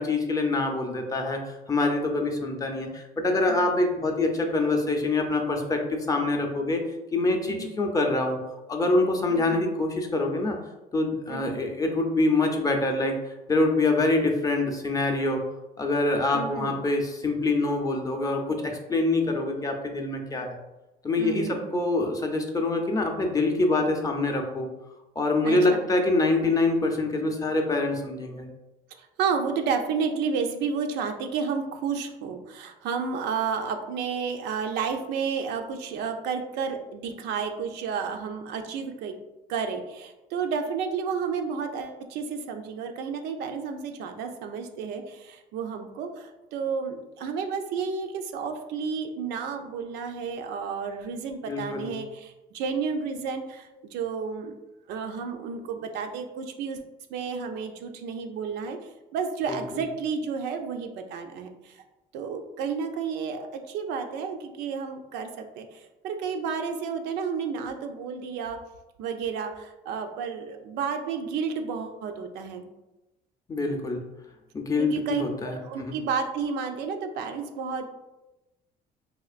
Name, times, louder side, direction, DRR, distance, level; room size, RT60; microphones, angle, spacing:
voice 1, 0.0-6.8 7.1-8.4 8.7-10.6 10.9-13.2 13.5-15.4 15.8-20.6 21.0-24.7 25.2-28.5 51.5-51.9 59.5-59.6 73.5-74.0 74.5-76.0, left 2 dB, 20° left, 3 dB, 0.5 m, -25 dB
voice 2, 9.3-9.6 11.3-11.6 16.3-16.8 21.2-21.8 25.4-25.9 29.0-39.2 39.5-54.5 54.9-56.8 57.1-58.8 59.1-61.7 62.1-68.6 69.0-72.7 74.8-77.9, right 6 dB, 85° right, 5 dB, 0.5 m, -31 dB
4.2 x 2.4 x 2.4 m, 1.0 s
cardioid pair, 110°, 17 cm